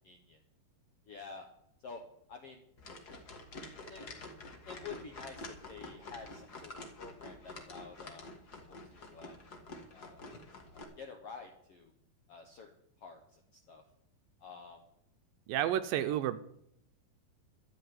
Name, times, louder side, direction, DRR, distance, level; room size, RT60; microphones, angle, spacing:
voice 1, 0.0-0.4 1.0-1.5 1.8-2.0 2.3-2.6 3.9-4.1 4.6-8.2 8.7-9.4 9.9-10.2 10.7-11.9 12.3-12.7 13.0-13.8 14.4-14.8 15.9-16.2, left 5 dB, 70° left, 4 dB, 1.4 m, -49 dB
sound 1, 2.8-10.8, left 2 dB, 40° left, 1.4 m, -48 dB
voice 2, 15.5-16.4, right 11 dB, 80° right, 9 dB, 2.1 m, -30 dB
12.5 x 7.2 x 9.7 m, 0.74 s
omnidirectional pair, 4.4 m